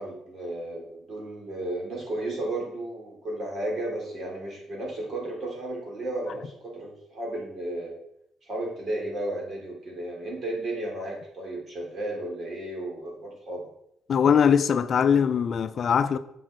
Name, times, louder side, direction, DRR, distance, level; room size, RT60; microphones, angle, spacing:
voice 1, 0.0-8.0 8.5-13.7, right 1 dB, 50° right, 3.6 m, -33 dB
voice 2, 14.1-16.2, left 7 dB, 55° left, 0.5 m, -21 dB
7.5 x 5.9 x 4.7 m
supercardioid pair, 65°, 0 cm